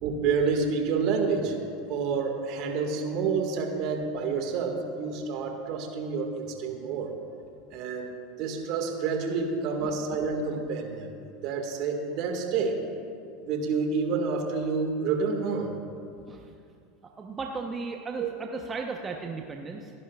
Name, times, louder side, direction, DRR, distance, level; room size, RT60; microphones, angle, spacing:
voice 1, 0.0-1.5 1.9-7.1 7.7-8.1 8.4-11.1 11.4-12.8 13.4-15.7 18.2-18.3, right 5 dB, 55° right, 3 dB, 1.9 m, -28 dB
voice 2, 17.2-19.9, right 4 dB, 25° right, 2 dB, 1.0 m, -36 dB
28.5 x 11.0 x 2.5 m, 2.4 s
hypercardioid pair, 85°, 0 cm